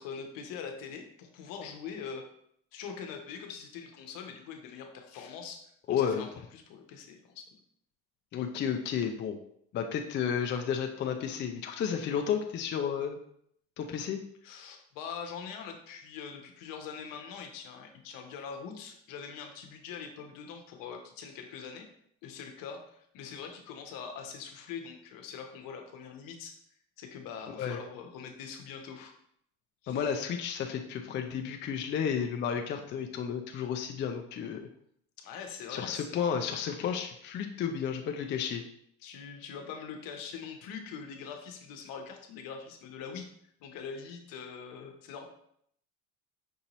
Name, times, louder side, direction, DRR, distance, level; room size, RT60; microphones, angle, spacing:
voice 1, 0.0-2.3 2.7-7.5 14.4-21.9 22.2-26.5 27.0-29.1 29.8-30.1 35.2-36.4 39.0-43.3 43.6-45.2, left 6 dB, 65° left, 4 dB, 0.9 m, -43 dB
voice 2, 5.9-6.3 8.3-9.4 9.7-13.2 13.8-14.2 27.6-27.8 29.9-34.7 35.7-38.6, left 7 dB, 30° left, 4 dB, 0.4 m, -32 dB
5.4 x 2.7 x 3.0 m, 0.69 s
supercardioid pair, 100°, 36 cm